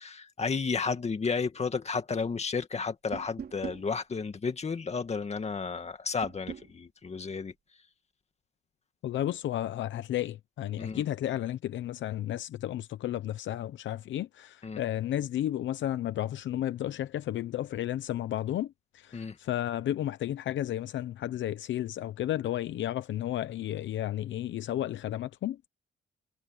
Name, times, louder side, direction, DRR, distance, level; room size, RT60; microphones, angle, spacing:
voice 1, 0.0-7.5 10.8-11.0 14.6-14.8 19.1-19.4, left 5 dB, 35° left, 2.3 m, -32 dB
sound 1, 3.1-3.9 6.2-6.7, right 7 dB, 50° right, 3.0 m, -40 dB
voice 2, 9.0-25.7, left 12 dB, 70° left, 0.9 m, -33 dB
cardioid pair, 90°, 20 cm